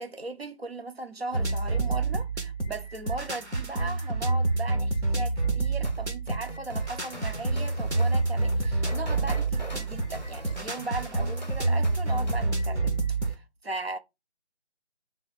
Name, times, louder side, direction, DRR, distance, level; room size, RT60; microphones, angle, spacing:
voice 1, 0.0-12.9 13.2-14.0, right 2 dB, 60° right, 0.8 m, -37 dB
sound 1, 1.3-13.4, right 3 dB, 75° right, 1.3 m, -28 dB
sound 2, 5.8-12.5, left 1 dB, 40° left, 0.6 m, -41 dB
3.7 x 2.8 x 4.0 m
figure-of-eight pair, 165°, 34 cm